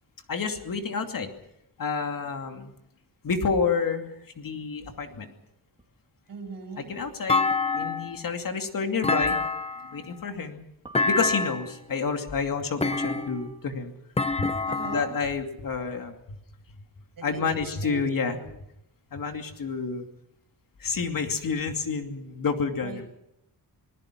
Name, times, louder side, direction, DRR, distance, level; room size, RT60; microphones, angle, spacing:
voice 1, 0.3-1.3 1.8-2.7 3.2-5.3 6.8-9.4 9.8-10.6 11.1-13.9 14.4-14.5 14.9-16.2 17.2-18.4 19.1-20.0 20.8-23.1, left 5 dB, 55° left, 5 dB, 2.7 m, -29 dB
sound 1, 5.8-5.9 7.4-7.8 9.0-9.6 10.8-11.6 12.9-13.8, right 3 dB, 15° right, 3.6 m, -49 dB
voice 2, 6.3-6.9 14.7-15.1 17.2-17.6 17.8-18.5 22.8-23.1, right 4 dB, 55° right, 5 dB, 7.1 m, -40 dB
Thump thud, 7.3-8.2 9.0-10.0 10.9-11.7 12.8-13.5 14.2-15.2, left 3 dB, 15° left, 0.8 m, -26 dB
27.0 x 20.0 x 6.1 m, 0.79 s
wide cardioid pair, 130°, 40 cm